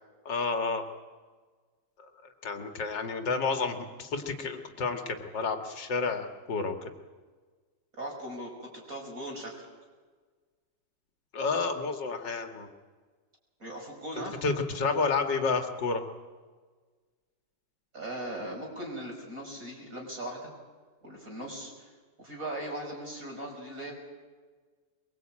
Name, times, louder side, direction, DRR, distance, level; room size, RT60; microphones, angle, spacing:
voice 1, 0.3-0.8 2.0-6.9 11.3-12.7 14.2-16.0, left 4 dB, 80° left, 6 dB, 2.5 m, -30 dB
voice 2, 8.0-9.7 13.6-14.4 17.9-20.5 21.0-21.9 22.2-23.9, right 1 dB, 50° right, 0 dB, 6.2 m, -39 dB
23.0 x 23.0 x 8.7 m, 1.4 s
omnidirectional pair, 1.9 m